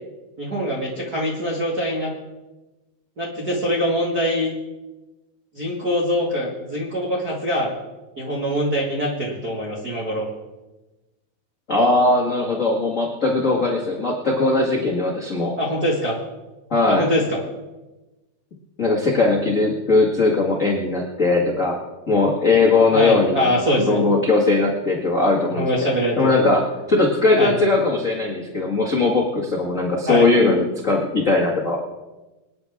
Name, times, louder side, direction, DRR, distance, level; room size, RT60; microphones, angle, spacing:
voice 1, 0.4-2.1 3.2-4.5 5.5-7.7 8.2-10.3 15.6-16.2 16.9-17.4 22.9-24.0 25.6-26.3 27.4-27.5 30.1-30.3, equal, 45° right, -4 dB, 1.2 m, -23 dB
voice 2, 11.7-15.5 16.7-17.1 18.8-21.8 22.1-23.5 23.7-25.6 26.2-31.8, left 3 dB, 45° left, -2 dB, 0.9 m, -19 dB
25.5 x 9.9 x 3.6 m, 1.1 s
omnidirectional pair, 4.7 m